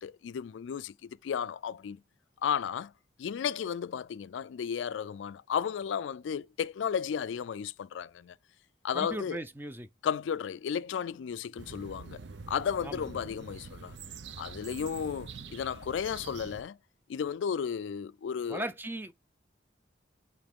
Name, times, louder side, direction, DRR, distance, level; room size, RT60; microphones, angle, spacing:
voice 1, 0.0-2.0 2.4-2.9 3.2-8.4 8.8-9.4 10.0-12.2 12.5-14.0 14.4-16.8 17.1-18.6, left 7 dB, 85° left, 0.3 m, -34 dB
voice 2, 8.9-9.9 12.8-13.1 18.5-19.1, right 1 dB, 10° right, 0.5 m, -37 dB
sound 1, 11.6-16.6, right 4 dB, 75° right, 0.6 m, -45 dB
8.6 x 3.1 x 3.6 m
head